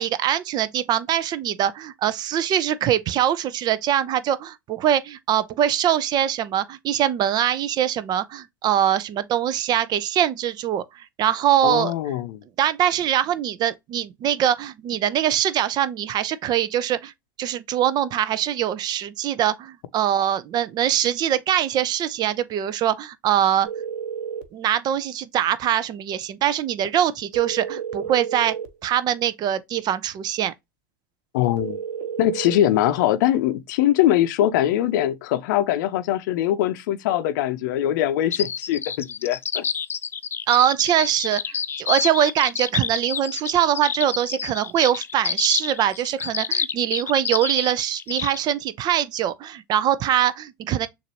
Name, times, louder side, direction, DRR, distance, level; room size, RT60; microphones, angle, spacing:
voice 1, 0.0-11.9 12.6-17.1 17.4-23.7 24.5-28.5 28.8-30.5 40.5-50.9, right 11 dB, 40° right, 0.6 m, -23 dB
voice 2, 11.6-12.4 31.3-31.8 32.2-39.6, left 12 dB, 60° left, 0.6 m, -22 dB
sound 1, 23.6-24.5 27.3-28.7 31.6-32.6, right 8 dB, 55° right, 1.0 m, -31 dB
sound 2, 38.3-48.4, left 7 dB, 20° left, 0.4 m, -28 dB
6.6 x 2.6 x 2.9 m
hypercardioid pair, 90°, 11 cm